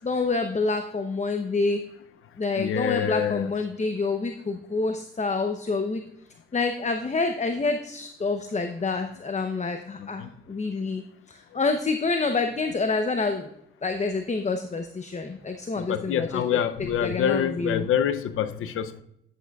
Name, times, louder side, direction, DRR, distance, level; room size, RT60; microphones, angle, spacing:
voice 1, 0.0-1.8 2.4-6.0 6.5-11.0 11.3-13.5 13.8-16.6 17.0-17.9, left 3 dB, 35° left, 6 dB, 0.9 m, -27 dB
voice 2, 2.6-3.5 10.2-10.3 15.8-19.0, left 9 dB, 85° left, 11 dB, 0.6 m, -26 dB
11.0 x 8.1 x 2.4 m, 0.77 s
cardioid pair, 65°, 21 cm